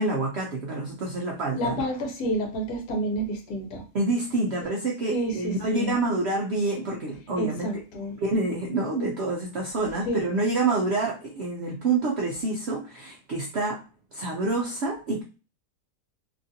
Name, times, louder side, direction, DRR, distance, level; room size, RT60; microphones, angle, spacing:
voice 1, 0.0-1.8 3.9-7.7 8.2-13.8 14.1-15.2, right 3 dB, 70° right, -1 dB, 0.6 m, -27 dB
voice 2, 1.6-3.8 5.1-5.9 7.4-8.2 10.0-10.2, right 1 dB, 75° left, 2 dB, 1.3 m, -29 dB
2.9 x 2.4 x 2.6 m, 0.33 s
omnidirectional pair, 1.7 m